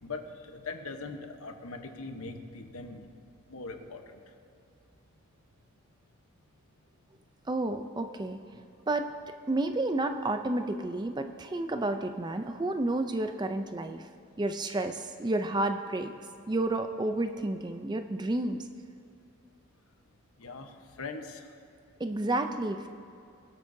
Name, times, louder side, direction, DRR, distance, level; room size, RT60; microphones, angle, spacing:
voice 1, 0.0-3.1 3.5-4.2 20.4-21.5, left 3 dB, 80° left, 6 dB, 1.0 m, -41 dB
voice 2, 7.5-8.4 8.9-9.1 9.5-14.0 14.4-16.1 16.5-18.6 22.0-22.9, right 2 dB, 20° right, 7 dB, 0.4 m, -30 dB
21.5 x 8.4 x 2.7 m, 2.6 s
head